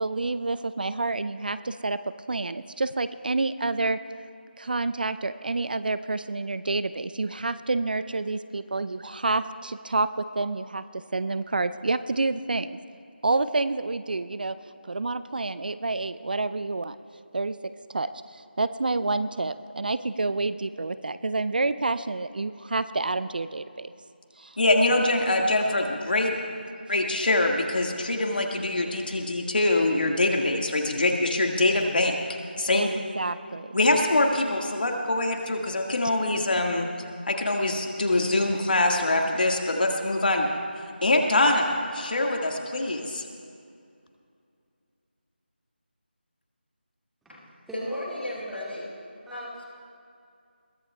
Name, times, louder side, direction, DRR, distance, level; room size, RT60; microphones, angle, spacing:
voice 1, 0.0-4.0 4.6-12.8 13.2-14.6 14.9-17.0 17.3-23.9 24.4-24.6 32.7-33.8, right 3 dB, 55° right, 14 dB, 0.4 m, -28 dB
voice 2, 24.6-26.4 26.9-32.2 32.6-32.9 33.7-36.9 37.3-40.5 41.0-43.2, left 2 dB, 55° left, 2 dB, 1.8 m, -24 dB
voice 3, 47.7-48.9 49.3-49.6, left 1 dB, 5° right, -16 dB, 2.1 m, -34 dB
22.0 x 17.5 x 2.3 m, 2.4 s
figure-of-eight pair, 170°, 6 cm